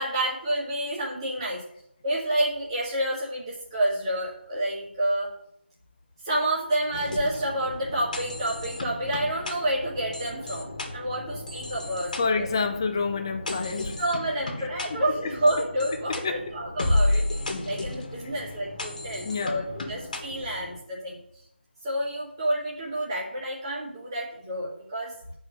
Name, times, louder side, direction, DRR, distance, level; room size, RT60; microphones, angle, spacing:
voice 1, 0.0-1.6 2.0-5.3 6.2-12.1 12.4-12.5 14.0-17.2 17.7-21.2 21.8-25.1, right 1 dB, 25° right, 1.8 m, -29 dB
sound 1, 6.9-20.8, left 2 dB, 40° left, 1.6 m, -33 dB
voice 2, 12.2-14.0 14.3-14.7 15.2-15.4 15.9-16.5 17.1-17.2 19.2-19.7, left 4 dB, 25° left, 0.7 m, -29 dB
9.4 x 4.7 x 6.5 m
figure-of-eight pair, 165°, 6 cm